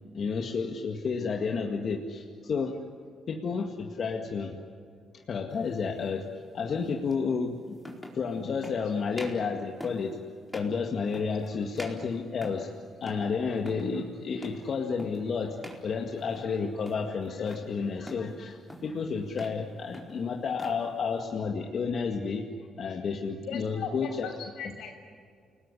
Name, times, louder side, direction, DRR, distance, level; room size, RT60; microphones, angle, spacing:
voice 1, 0.1-2.8 3.3-4.6 5.1-6.3 6.5-7.8 8.1-10.2 10.5-12.7 13.0-22.4 22.8-24.3, left 5 dB, 55° left, 2 dB, 2.0 m, -31 dB
sound 1, 5.6-5.8 7.1-7.2 7.8-8.2 8.6-8.8 9.1-9.5 9.8-10.1 10.5-10.8 11.1-11.5 11.8-12.7 13.0-13.3 13.6-13.9 14.4-14.7 15.0-15.3 15.6-15.9 16.2-16.6 16.8-17.7 18.1-18.3 18.7-19.0 19.3-19.6 19.9-20.8, equal, ahead, 4.4 m, -44 dB
voice 2, 23.4-24.9, left 6 dB, 80° left, 4 dB, 6.3 m, -38 dB
29.5 x 19.5 x 9.8 m, 2.1 s
cardioid pair, 90°, 0 cm